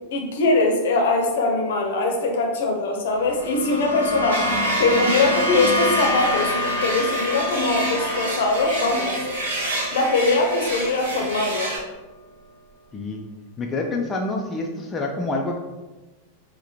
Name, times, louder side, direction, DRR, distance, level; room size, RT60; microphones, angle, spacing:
voice 1, 0.1-9.2 9.9-11.7, left 2 dB, 60° left, 2 dB, 0.7 m, -22 dB
sound 1, 3.2-11.6, left 1 dB, 85° right, 0.6 m, -28 dB
sound 2, 4.3-11.8, right 1 dB, 60° right, 1.0 m, -29 dB
voice 2, 13.6-15.6, left 2 dB, 20° left, 0 dB, 0.4 m, -27 dB
4.7 x 2.1 x 2.8 m, 1.1 s
figure-of-eight pair, 90°, 0 cm